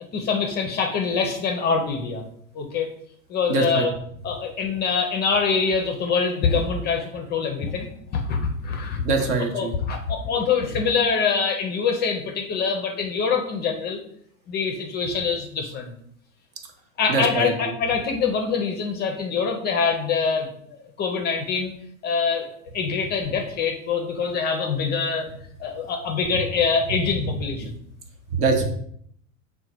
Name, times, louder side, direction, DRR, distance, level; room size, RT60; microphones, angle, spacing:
voice 1, 0.1-2.2 2.5-2.9 3.3-3.9 4.2-9.1 9.5-14.0 14.5-15.9 17.0-20.5 21.0-21.7 22.0-25.3 25.6-27.8, left 5 dB, 25° left, 3 dB, 0.4 m, -24 dB
voice 2, 3.5-3.9 9.0-9.8 17.1-17.7 27.6-27.7 28.4-28.6, right 3 dB, 55° right, 4 dB, 0.9 m, -23 dB
3.8 x 2.2 x 4.3 m, 0.67 s
hypercardioid pair, 100°, 42 cm